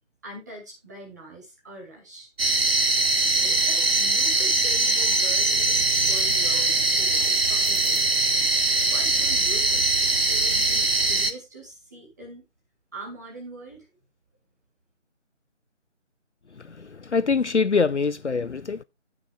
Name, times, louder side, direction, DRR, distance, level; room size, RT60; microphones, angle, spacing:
voice 1, 0.2-2.3 3.4-5.8 6.1-8.0 8.9-12.5 12.9-13.9, right 1 dB, 15° right, 2.4 m, -43 dB
sound 1, 2.4-11.3, right 2 dB, 50° right, 1.1 m, -22 dB
voice 2, 16.5-18.8, left 5 dB, 65° left, 0.6 m, -24 dB
16.0 x 6.2 x 2.4 m
figure-of-eight pair, 165°, 38 cm